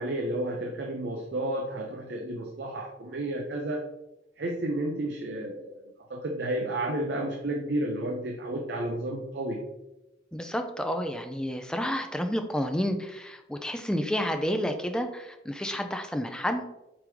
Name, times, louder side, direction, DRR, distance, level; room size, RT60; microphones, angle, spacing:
voice 1, 0.0-3.9 4.4-5.7 6.1-9.6, right 1 dB, 65° right, 1 dB, 0.5 m, -31 dB
voice 2, 10.3-16.7, equal, 5° left, 6 dB, 0.3 m, -30 dB
5.1 x 3.5 x 3.0 m, 0.96 s
head